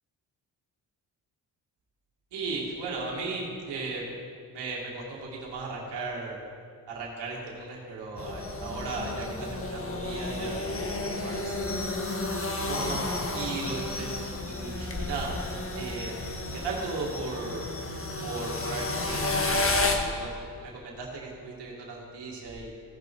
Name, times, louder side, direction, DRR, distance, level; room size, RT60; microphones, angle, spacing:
voice 1, 2.3-4.1 4.5-6.4 6.9-11.6 12.6-15.4 15.7-16.3 16.5-17.7 18.2-22.7, right 3 dB, 80° right, -3 dB, 2.4 m, -36 dB
sound 1, 8.2-20.0, left 2 dB, 30° left, 1.4 m, -31 dB
16.5 x 5.9 x 4.7 m, 2.2 s
cardioid pair, 75°, 41 cm